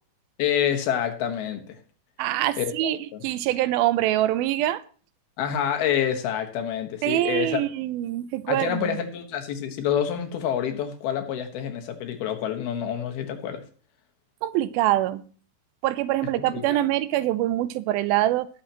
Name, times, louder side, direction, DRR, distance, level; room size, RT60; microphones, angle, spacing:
voice 1, 0.4-1.8 2.6-3.2 5.4-7.6 8.5-13.6 16.4-16.8, left 9 dB, 90° left, 3.3 m, -27 dB
voice 2, 2.2-3.0 3.2-4.8 7.0-9.0 14.4-15.2 15.8-18.5, right 14 dB, 85° right, 2.5 m, -24 dB
18.5 x 7.3 x 2.9 m
omnidirectional pair, 4.3 m